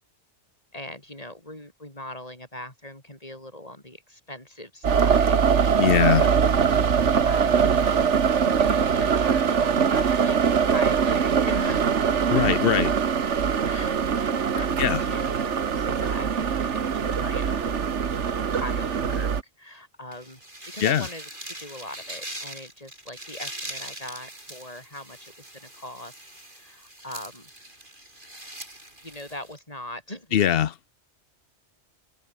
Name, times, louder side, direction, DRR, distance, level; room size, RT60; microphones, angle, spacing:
voice 1, 0.7-11.9 12.2-12.5 13.6-15.4 15.8-18.1 18.5-19.3 19.6-20.4 20.7-27.5 29.0-30.4, left 1 dB, 35° left, 6.5 m, -40 dB
sound 1, 4.8-19.4, right 7 dB, 90° right, 1.6 m, -22 dB
voice 2, 5.8-6.3 12.3-12.9 14.8-15.0 20.8-21.1 30.3-30.7, left 10 dB, 60° left, 0.9 m, -21 dB
sound 2, 20.1-29.6, right 1 dB, 45° right, 8.3 m, -41 dB
omnidirectional pair, 1.2 m